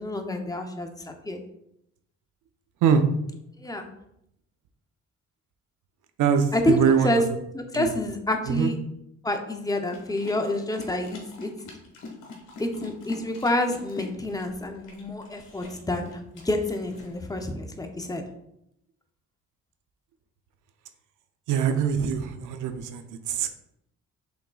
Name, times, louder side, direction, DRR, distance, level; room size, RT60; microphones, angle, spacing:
voice 1, 0.0-1.4 3.6-3.8 6.5-6.8 7.0-7.2 7.5-8.7 9.2-11.5 12.6-16.2 16.4-18.2, left 1 dB, 10° left, 5 dB, 0.6 m, -28 dB
voice 2, 6.2-7.2 7.7-7.9 8.5-8.7 21.5-23.5, right 7 dB, 85° right, 8 dB, 0.6 m, -23 dB
sound 1, 9.9-17.5, left 3 dB, 85° left, 1.3 m, -43 dB
5.8 x 3.7 x 2.3 m, 0.78 s
cardioid pair, 90°, 30 cm